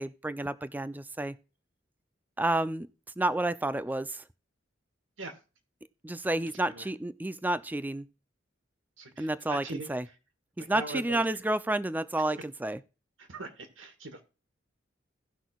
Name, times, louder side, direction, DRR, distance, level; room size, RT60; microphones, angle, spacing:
voice 1, 0.0-1.4 2.4-2.9 3.2-4.2 6.0-8.1 9.2-10.1 10.6-12.8, right 1 dB, 10° right, 0.4 m, -30 dB
voice 2, 9.0-9.9 10.6-11.2 12.2-12.3 13.2-14.2, right 2 dB, 80° right, 1.8 m, -41 dB
17.5 x 6.0 x 2.3 m
head